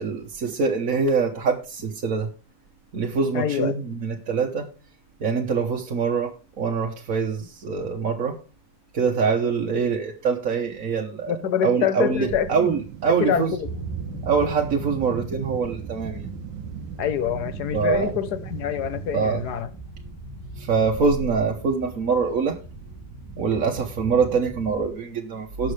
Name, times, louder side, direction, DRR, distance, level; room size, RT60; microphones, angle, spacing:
voice 1, 0.0-2.3 2.9-4.7 5.2-8.4 8.9-11.3 11.6-13.5 14.2-16.3 17.7-18.1 19.1-19.4 20.6-22.6 23.4-25.7, right 5 dB, 50° right, 1.4 m, -24 dB
voice 2, 3.3-3.8 11.3-12.7 13.1-13.7 17.0-19.7, left 9 dB, 60° left, 1.5 m, -26 dB
sound 1, 12.1-19.6, right 10 dB, 80° right, 1.4 m, -38 dB
sound 2, 13.6-24.9, right 2 dB, 10° left, 4.4 m, -39 dB
18.0 x 6.5 x 3.3 m
omnidirectional pair, 2.0 m